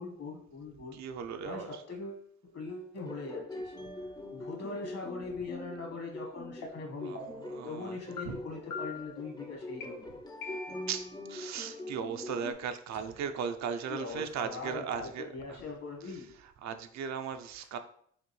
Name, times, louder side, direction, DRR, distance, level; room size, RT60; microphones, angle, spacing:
voice 1, 0.0-1.0 1.4-3.7 4.3-7.2 7.6-10.1 13.9-16.3, left 3 dB, 55° left, 0 dB, 1.5 m, -41 dB
voice 2, 0.9-1.8 7.0-8.0 8.2-8.4 10.9-15.6 16.0-17.8, right 7 dB, 65° right, 8 dB, 0.5 m, -38 dB
sound 1, 3.0-12.5, left 1 dB, 15° left, 0.5 m, -43 dB
sound 2, 6.6-6.7 7.1-7.5 8.2-8.3 8.7-9.2 9.8-9.9 10.4-11.0, left 4 dB, 90° left, 0.8 m, -42 dB
5.0 x 2.6 x 3.1 m, 0.63 s
cardioid pair, 90°, 30 cm